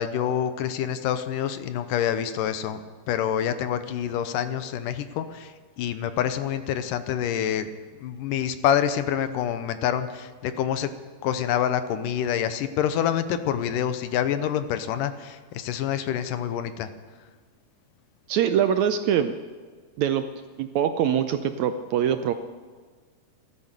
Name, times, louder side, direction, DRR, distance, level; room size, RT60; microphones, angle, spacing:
voice 1, 0.0-2.8 3.1-7.7 8.0-10.9 11.2-16.9, left 9 dB, 85° left, 11 dB, 2.5 m, -27 dB
voice 2, 18.3-19.4 20.0-20.2 20.6-22.3, right 9 dB, 75° right, 9 dB, 1.7 m, -23 dB
15.0 x 13.5 x 6.7 m, 1.5 s
omnidirectional pair, 3.8 m